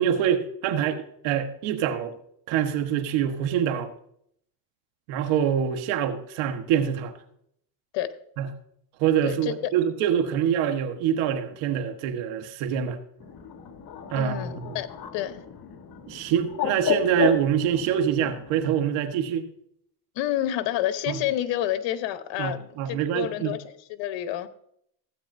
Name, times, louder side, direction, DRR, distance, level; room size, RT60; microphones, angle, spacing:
voice 1, 0.0-2.1 2.5-3.9 5.1-7.1 8.4-8.5 9.0-13.0 14.1-14.8 16.1-19.5 21.1-21.2 22.4-23.5, right 9 dB, 80° right, 1.5 m, -25 dB
voice 2, 9.2-9.5 14.1-14.9 15.1-15.4 20.1-24.5, left 12 dB, 70° left, 1.1 m, -29 dB
Bird, 13.2-18.7, left 7 dB, 50° left, 1.6 m, -32 dB
16.0 x 8.7 x 2.7 m
supercardioid pair, 95°, 47 cm